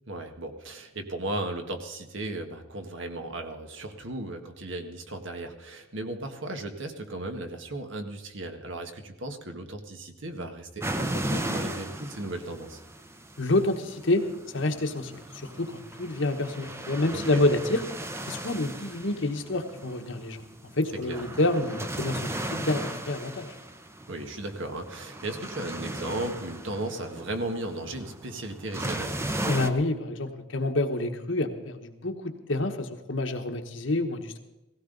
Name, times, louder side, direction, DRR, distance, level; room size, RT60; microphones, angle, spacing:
voice 1, 0.1-12.8 17.1-17.4 21.1-21.2 24.1-29.2, right 2 dB, 60° right, 5 dB, 1.6 m, -36 dB
sound 1, 10.8-29.7, right 1 dB, 10° right, 0.7 m, -36 dB
voice 2, 13.4-14.3 14.5-17.8 18.3-23.5 29.5-34.4, left 2 dB, 60° left, 6 dB, 1.3 m, -28 dB
17.0 x 16.0 x 4.0 m, 1.0 s
head